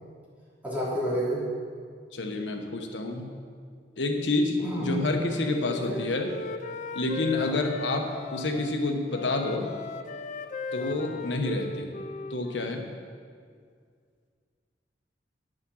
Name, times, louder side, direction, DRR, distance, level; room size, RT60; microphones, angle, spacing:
voice 1, 0.6-1.4 4.6-4.9 5.8-6.0 7.4-7.6 10.8-11.0, equal, 10° right, -8 dB, 3.1 m, -30 dB
voice 2, 2.1-3.3 4.0-6.3 6.9-9.7 10.7-12.0 12.3-12.8, left 2 dB, 85° left, 3 dB, 1.1 m, -28 dB
Wind instrument woodwind instrument, 5.1-8.8 9.1-12.8, left 3 dB, 45° left, 0.5 m, -38 dB
9.8 x 6.4 x 6.3 m, 2.1 s
head